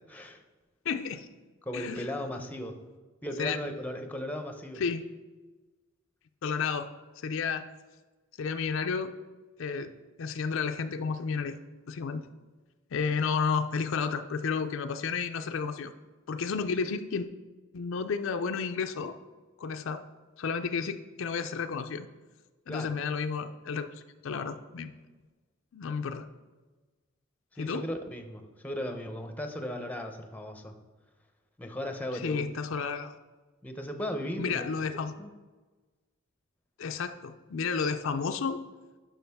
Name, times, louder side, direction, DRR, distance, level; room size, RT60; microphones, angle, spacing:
voice 1, 0.1-0.4 1.6-2.8 3.2-4.8 16.6-16.7 22.7-22.9 27.6-30.7 31.6-32.5 33.6-35.3, left 1 dB, 10° left, 6 dB, 0.7 m, -37 dB
voice 2, 0.9-1.3 1.7-2.1 3.4-3.6 4.8-5.0 6.4-6.9 7.2-7.6 8.4-9.1 9.6-9.9 10.2-11.6 11.9-12.2 12.9-15.9 16.3-17.3 17.7-19.1 19.6-20.0 20.4-22.1 22.7-24.9 25.7-26.3 27.6-27.9 32.1-33.2 34.4-35.1 36.8-38.7, left 5 dB, 65° left, 8 dB, 0.4 m, -32 dB
11.0 x 5.8 x 3.5 m, 1.3 s
head